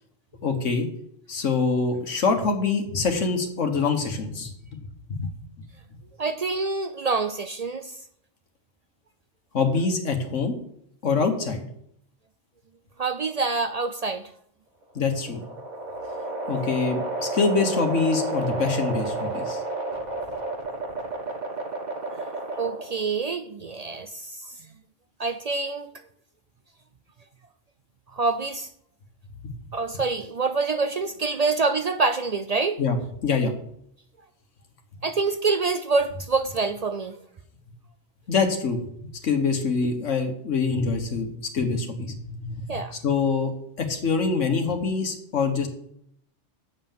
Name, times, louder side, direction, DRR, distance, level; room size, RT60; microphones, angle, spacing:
voice 1, 0.4-0.9 1.3-4.8 5.1-5.3 9.5-10.5 11.0-11.6 14.9-15.4 16.5-19.6 29.4-29.5 32.8-33.0 33.2-33.5 38.3-38.8 39.2-41.3 41.5-42.5 43.0-43.5 43.8-45.7, left 4 dB, 70° left, 1.5 m, -25 dB
voice 2, 6.2-7.9 13.0-14.3 22.6-24.4 25.2-25.9 28.1-28.7 29.7-32.8 35.0-37.2 42.7-42.9, right 4 dB, 65° right, 0.4 m, -26 dB
sound 1, 14.8-23.1, right 2 dB, 35° right, 1.4 m, -31 dB
8.1 x 5.6 x 7.2 m
omnidirectional pair, 1.3 m